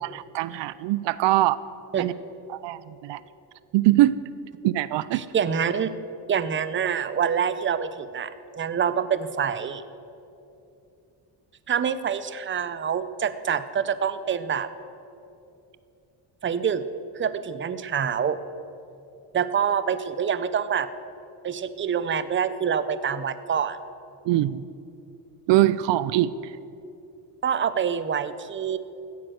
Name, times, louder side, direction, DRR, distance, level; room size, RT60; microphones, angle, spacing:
voice 1, 0.0-1.6 2.0-2.1 2.5-3.2 3.7-4.2 4.6-5.2 24.2-24.6 25.5-26.3, right 15 dB, 75° right, 17 dB, 0.6 m, -22 dB
voice 2, 5.1-5.9 6.3-9.8 11.7-14.7 16.4-16.8 17.1-18.4 19.3-20.9 21.4-23.8 27.4-28.8, right 7 dB, 25° right, 13 dB, 0.7 m, -26 dB
15.5 x 9.6 x 7.9 m, 2.7 s
cardioid pair, 120°, 43 cm